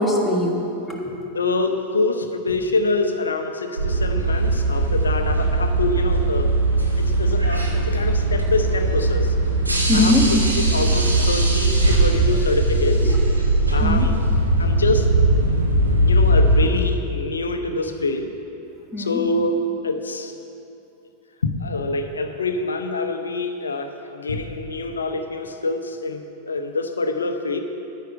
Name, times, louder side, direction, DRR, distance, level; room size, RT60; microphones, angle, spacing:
voice 1, 0.0-1.2 9.8-10.3 13.0-13.2 13.8-14.1 18.9-19.2, left 1 dB, 5° left, -2 dB, 1.5 m, -21 dB
voice 2, 1.3-6.5 7.0-9.3 9.9-13.1 13.7-14.2 14.6-15.1 16.0-18.3 19.0-20.3 21.4-27.6, left 3 dB, 75° left, 7 dB, 0.7 m, -25 dB
sound 1, 3.8-16.7, right 2 dB, 85° right, 1.2 m, -19 dB
10.5 x 9.3 x 4.8 m, 2.8 s
figure-of-eight pair, 90°, 0 cm